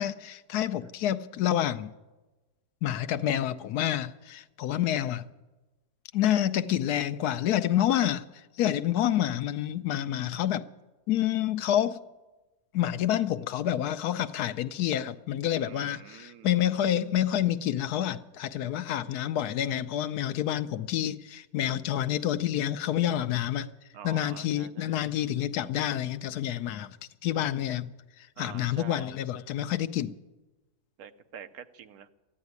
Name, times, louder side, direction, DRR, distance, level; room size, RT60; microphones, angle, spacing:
voice 1, 0.0-1.9 2.8-5.3 6.1-8.2 8.6-10.7 11.1-12.0 12.7-23.7 24.0-27.0 27.2-27.9 28.4-30.1, left 11 dB, 80° left, 1.2 m, -28 dB
voice 2, 15.6-16.5 23.9-25.0 28.4-29.1 31.0-32.1, right 8 dB, 75° right, 1.3 m, -46 dB
14.0 x 9.9 x 9.4 m
omnidirectional pair, 1.6 m